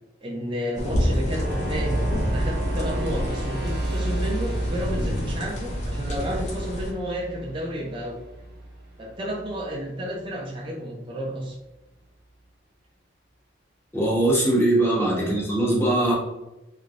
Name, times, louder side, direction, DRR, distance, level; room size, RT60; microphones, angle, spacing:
voice 1, 0.2-8.2 9.0-11.6 15.1-15.8, equal, 25° right, -2 dB, 0.5 m, -32 dB
sound 1, 0.7-6.9, equal, 40° left, 0.6 m, -29 dB
sound 2, 1.3-9.9, right 1 dB, 60° right, 1.0 m, -31 dB
voice 2, 13.9-16.1, right 1 dB, 15° left, -5 dB, 1.0 m, -21 dB
3.2 x 3.1 x 2.4 m, 1.0 s
head